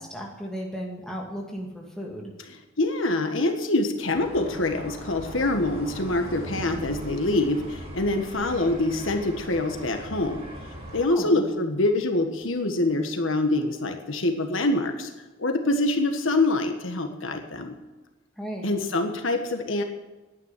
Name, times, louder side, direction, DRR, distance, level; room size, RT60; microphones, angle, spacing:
voice 1, 0.0-2.3 11.1-11.4 18.4-18.8, equal, 5° left, -1 dB, 2.3 m, -35 dB
voice 2, 2.8-10.5 10.9-15.1 15.4-17.7 18.6-19.8, left 2 dB, 80° left, 5 dB, 1.5 m, -25 dB
sound 1, 4.1-11.0, equal, 30° right, 6.0 m, -39 dB
10.5 x 9.3 x 9.7 m, 1.2 s
head